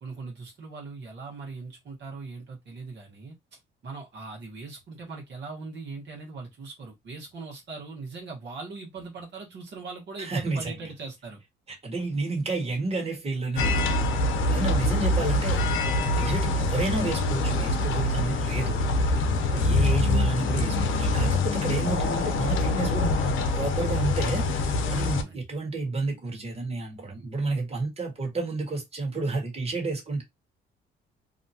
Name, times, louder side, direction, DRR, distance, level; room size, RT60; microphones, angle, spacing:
voice 1, 0.0-11.4 25.1-25.4, right 4 dB, 60° right, 1.2 m, -40 dB
voice 2, 10.2-10.9 11.8-14.1 14.5-19.2 19.5-30.2, right 3 dB, 30° right, 1.4 m, -31 dB
sound 1, 13.6-25.2, left 2 dB, 80° left, 0.6 m, -25 dB
2.8 x 2.2 x 2.7 m
cardioid pair, 90°, 20 cm